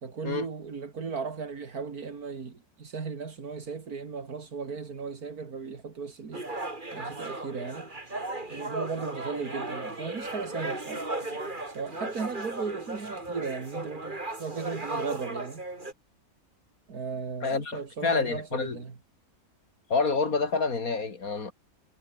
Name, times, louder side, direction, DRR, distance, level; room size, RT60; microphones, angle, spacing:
voice 1, 0.0-6.5 6.9-7.9 8.5-11.1 11.7-15.6 16.9-19.0, right 5 dB, 80° right, 2.8 m, -36 dB
sound 1, 6.3-15.9, right 2 dB, 30° right, 3.7 m, -36 dB
voice 2, 17.4-18.8 19.9-21.5, left 4 dB, 70° left, 3.5 m, -28 dB
omnidirectional pair, 1.6 m